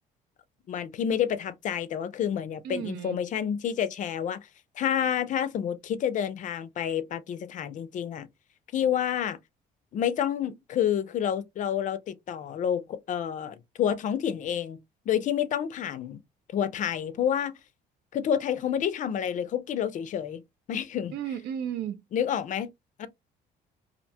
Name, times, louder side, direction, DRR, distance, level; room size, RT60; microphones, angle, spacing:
voice 1, 0.7-4.4 4.8-8.3 8.7-9.4 9.9-14.8 15.1-16.2 16.5-17.6 18.1-20.4 20.7-21.2 22.1-22.7 23.0-23.1, left 9 dB, 50° left, 0.4 m, -29 dB
voice 2, 2.6-3.2 21.1-22.0, right 9 dB, 70° right, 0.5 m, -33 dB
2.5 x 2.1 x 2.7 m
cardioid pair, 110°, 17 cm